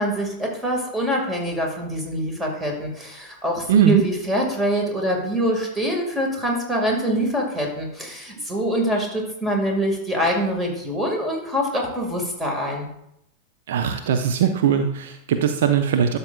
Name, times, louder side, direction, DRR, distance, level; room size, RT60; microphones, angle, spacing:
voice 1, 0.0-12.9, equal, 10° right, 0 dB, 2.1 m, -24 dB
voice 2, 3.7-4.0 13.7-16.2, right 8 dB, 55° right, 7 dB, 0.5 m, -20 dB
12.0 x 6.8 x 2.4 m, 0.78 s
figure-of-eight pair, 90°, 0 cm